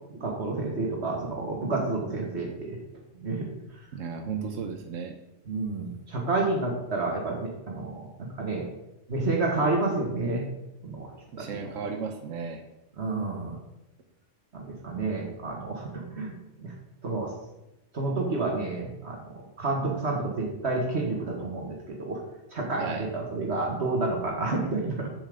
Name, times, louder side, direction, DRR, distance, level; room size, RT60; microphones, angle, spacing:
voice 1, 0.1-2.8 3.2-3.5 4.3-4.7 5.5-8.6 9.1-10.4 10.8-11.1 11.6-11.7 13.0-13.6 14.5-16.3 16.6-16.7 17.0-17.3 17.9-22.2 22.5-25.1, right 3 dB, 60° right, 0 dB, 1.8 m, -30 dB
voice 2, 3.9-5.2 11.3-12.6 22.8-23.1, right 5 dB, 80° right, 5 dB, 1.2 m, -35 dB
8.5 x 7.4 x 5.0 m, 0.93 s
omnidirectional pair, 1.3 m